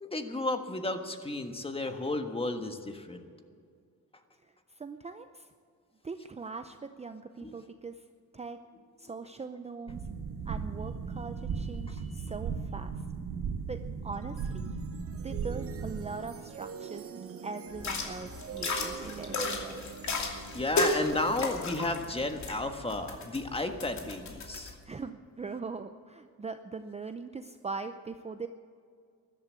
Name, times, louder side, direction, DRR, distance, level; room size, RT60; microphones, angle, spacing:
voice 1, 0.0-3.3 7.4-7.5 20.5-24.8, left 2 dB, 15° left, 6 dB, 1.4 m, -33 dB
voice 2, 4.4-5.5 6.0-8.0 8.3-8.6 9.0-10.0 10.5-12.9 13.7-14.7 15.2-17.2 17.4-19.8 24.9-28.5, right 4 dB, 20° right, 8 dB, 0.6 m, -41 dB
sound 1, 9.9-16.1, right 5 dB, 70° right, 1.3 m, -36 dB
sound 2, 14.1-23.4, right 7 dB, 45° right, 0.9 m, -46 dB
sound 3, 17.7-24.7, left 3 dB, 55° left, 2.7 m, -34 dB
14.0 x 11.5 x 8.2 m, 2.2 s
cardioid pair, 115°, 33 cm